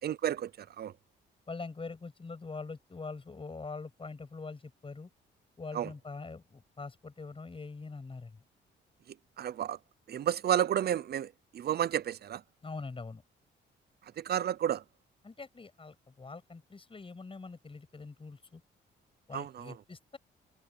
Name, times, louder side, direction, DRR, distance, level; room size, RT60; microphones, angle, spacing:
voice 1, 0.0-0.9 5.7-5.9 9.4-9.8 10.1-12.4 14.2-14.8 19.3-19.7, right 10 dB, 55° right, 0.7 m, -31 dB
voice 2, 1.5-5.1 5.6-8.4 12.6-13.2 15.2-18.6 19.3-20.2, left 4 dB, 25° left, 7.4 m, -43 dB
cardioid pair, 90°, 20 cm